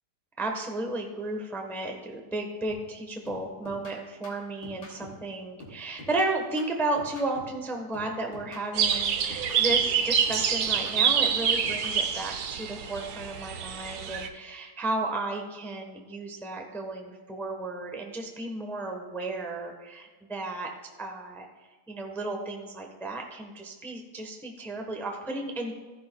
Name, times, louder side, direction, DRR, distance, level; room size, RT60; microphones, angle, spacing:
voice 1, 0.4-20.7 21.0-21.5 21.9-25.7, right 2 dB, ahead, 2 dB, 0.4 m, -33 dB
sound 1, 2.7-3.0 3.3-5.3 5.6-7.6 7.9-10.0 10.3-12.0, left 2 dB, 50° left, 3.2 m, -47 dB
sound 2, 8.7-14.3, right 7 dB, 65° right, 1.0 m, -26 dB
15.0 x 10.5 x 2.3 m, 1.4 s
omnidirectional pair, 2.4 m